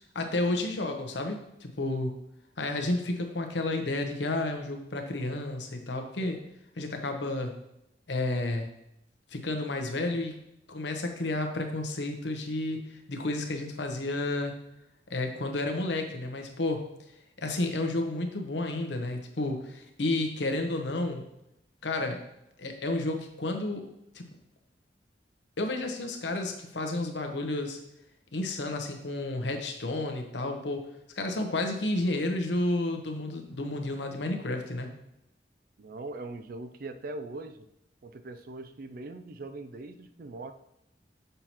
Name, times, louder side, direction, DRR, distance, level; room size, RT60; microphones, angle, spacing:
voice 1, 0.1-2.1 2.6-6.4 6.8-7.6 8.1-8.7 9.3-10.3 10.7-14.6 15.1-16.8 17.4-21.2 21.8-22.2 22.6-23.8 24.1-24.2 25.6-27.8 28.3-30.9 31.2-34.9, left 2 dB, 85° left, 4 dB, 0.9 m, -31 dB
voice 2, 35.8-37.7 38.0-40.5, right 2 dB, 55° right, 10 dB, 0.4 m, -41 dB
6.7 x 5.5 x 3.0 m, 0.85 s
head